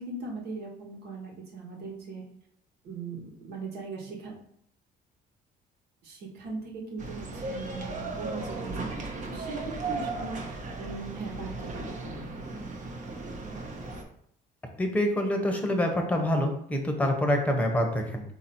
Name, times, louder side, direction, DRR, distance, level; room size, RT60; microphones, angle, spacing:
voice 1, 0.0-2.2 2.8-4.3 6.0-12.3, right 3 dB, 75° right, -1 dB, 1.4 m, -39 dB
sound 1, 7.0-14.0, right 3 dB, 45° right, 0.8 m, -36 dB
voice 2, 14.8-18.2, left 1 dB, 10° left, 3 dB, 0.9 m, -26 dB
4.1 x 2.8 x 4.2 m, 0.69 s
cardioid pair, 110°, 17 cm